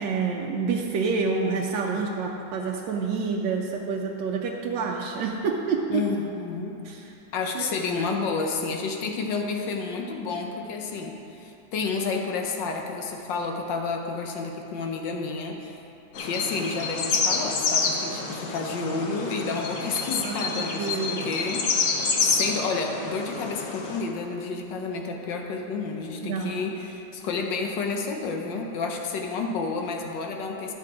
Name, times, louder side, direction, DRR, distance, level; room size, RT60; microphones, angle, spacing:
voice 1, 0.0-6.0 6.9-7.0 7.5-7.7 20.2-21.2 26.2-26.6, right 5 dB, 75° right, -1 dB, 1.3 m, -28 dB
voice 2, 5.9-6.8 7.3-15.8 16.2-21.6 22.2-30.7, left 4 dB, 75° left, 2 dB, 1.5 m, -30 dB
sound 1, 16.1-24.0, left 4 dB, 55° left, 1.1 m, -28 dB
11.0 x 6.7 x 4.8 m, 2.8 s
omnidirectional pair, 2.0 m